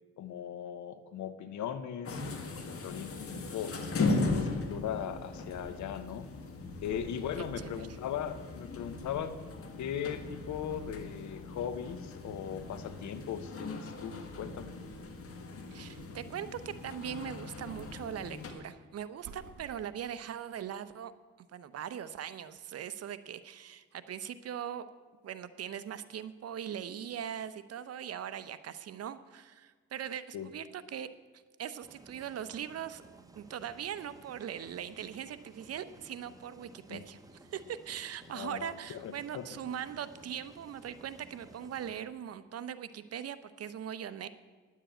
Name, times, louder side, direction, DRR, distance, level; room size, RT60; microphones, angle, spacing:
voice 1, 0.2-3.8 4.2-6.3 6.8-14.7 30.3-30.5 36.9-37.0 38.3-39.5, left 8 dB, 70° left, 12 dB, 1.0 m, -39 dB
sound 1, 2.0-18.5, left 3 dB, 50° left, 1.7 m, -38 dB
sound 2, 5.4-8.1 8.3-9.3 9.8-10.1 10.7-11.0 11.6-11.7 12.2-13.1 14.1-15.5 15.9-16.5 17.3-18.6 19.0-20.2 20.8-20.9, right 5 dB, 70° right, 2.0 m, -56 dB
voice 2, 15.7-21.1 21.5-24.9 25.2-31.1 31.6-33.0 33.4-37.2 37.5-44.3, right 9 dB, 55° right, 13 dB, 0.7 m, -40 dB
sound 3, 31.8-42.0, right 2 dB, 10° right, 1.2 m, -56 dB
10.0 x 7.5 x 9.0 m, 1.4 s
cardioid pair, 90°, 30 cm